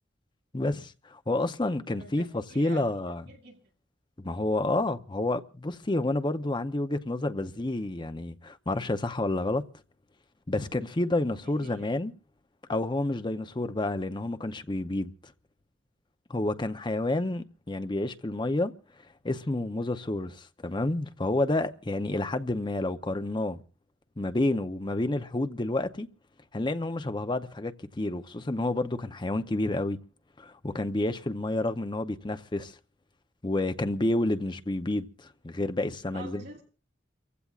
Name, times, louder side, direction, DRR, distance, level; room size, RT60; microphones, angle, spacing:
voice 1, 0.5-3.2 4.2-9.6 10.5-12.1 12.7-15.1 16.3-18.7 19.2-23.6 24.2-26.1 26.5-30.0 30.4-32.7 33.4-36.6, left 2 dB, 25° left, 0.7 m, -29 dB
voice 2, 2.0-3.6 11.4-11.9 36.1-36.6, right 2 dB, 60° right, 7.5 m, -47 dB
29.0 x 15.5 x 2.4 m
head